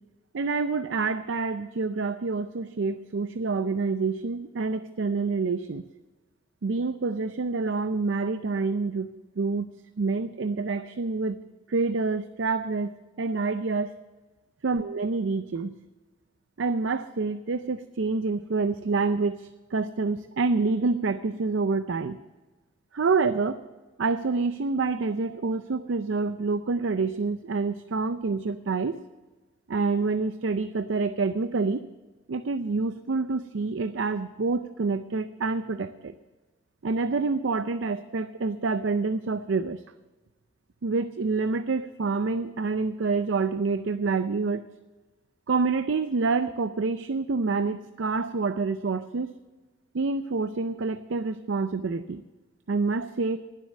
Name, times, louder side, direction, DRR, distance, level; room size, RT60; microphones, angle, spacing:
voice 1, 0.3-5.8 6.6-9.7 10.0-11.4 11.7-12.9 13.2-13.9 14.6-15.8 16.6-22.2 22.9-23.6 24.0-29.0 29.7-31.8 32.3-36.1 36.8-39.8 40.8-44.6 45.5-49.3 49.9-52.2 52.7-53.4, right 4 dB, 80° right, 11 dB, 0.5 m, -27 dB
19.0 x 7.6 x 6.5 m, 1.2 s
head